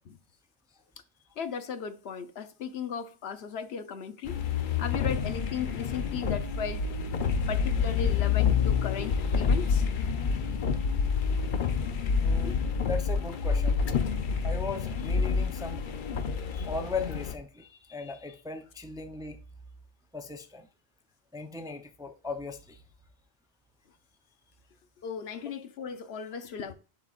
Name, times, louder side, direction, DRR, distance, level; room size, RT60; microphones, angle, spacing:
voice 1, 1.4-4.4 4.8-6.9 7.5-9.8 12.3-12.6 25.0-26.7, left 6 dB, 80° left, 1.0 m, -36 dB
sound 1, 4.3-17.3, left 6 dB, 55° left, 0.8 m, -28 dB
voice 2, 12.2-12.6 12.8-13.8 14.4-15.8 16.5-19.4 20.1-20.7 21.3-22.8, left 3 dB, 5° right, 0.4 m, -38 dB
11.0 x 4.3 x 2.4 m
omnidirectional pair, 1.1 m